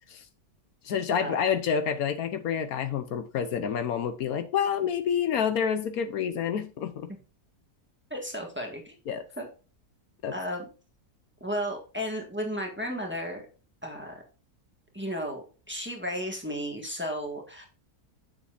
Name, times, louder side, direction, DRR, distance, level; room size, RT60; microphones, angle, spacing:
voice 1, 0.8-7.1 9.1-9.2 10.2-10.3, left 7 dB, 75° left, 1.2 m, -28 dB
voice 2, 8.1-8.9 9.4-9.5 10.3-10.6 11.4-13.4 13.8-14.2 14.9-17.6, equal, 5° right, 1.6 m, -34 dB
7.2 x 7.0 x 2.6 m
omnidirectional pair, 1.6 m